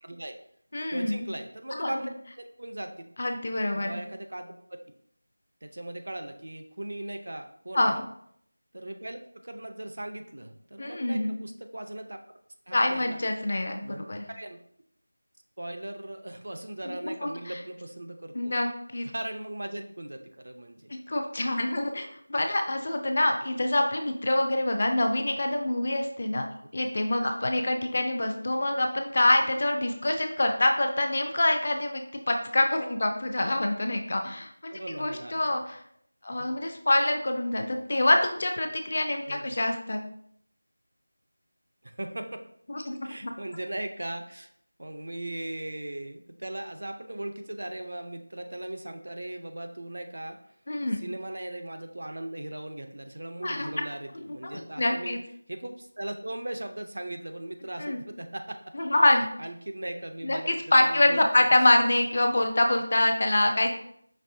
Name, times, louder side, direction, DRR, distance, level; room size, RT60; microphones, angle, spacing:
voice 1, 0.0-0.4 0.9-2.1 2.4-3.1 3.7-4.5 5.6-8.0 8.7-12.2 12.7-13.2 13.8-14.6 15.6-18.5 19.0-20.9 34.7-35.6 36.3-36.5 39.3-39.6 41.8-42.4 43.0-44.5 44.8-50.4 51.0-55.2 55.5-58.6 59.4-60.5 60.9-61.5, right 1 dB, 60° right, 6 dB, 0.5 m, -38 dB
voice 2, 0.7-1.3 1.7-2.0 3.2-4.0 7.7-7.9 10.8-11.4 12.7-14.3 16.9-17.6 18.3-19.1 20.9-26.4 26.7-35.8 36.2-40.0 42.7-43.3 50.7-51.0 53.4-53.8 54.3-55.2 57.8-58.0 58.7-59.3 60.2-63.8, left 1 dB, 40° left, 4 dB, 0.5 m, -26 dB
5.2 x 3.1 x 2.6 m, 0.68 s
figure-of-eight pair, 175°, 0 cm